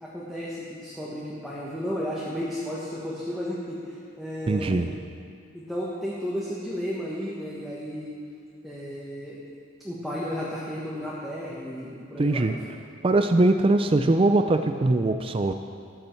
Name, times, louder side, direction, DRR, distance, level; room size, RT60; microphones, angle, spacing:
voice 1, 0.0-4.9 5.5-8.2 8.6-9.4 9.8-12.8, equal, ahead, -7 dB, 1.2 m, -33 dB
voice 2, 4.5-4.9 12.2-12.6 13.0-15.5, right 2 dB, 25° right, 7 dB, 0.4 m, -21 dB
13.5 x 9.6 x 4.5 m, 2.4 s
head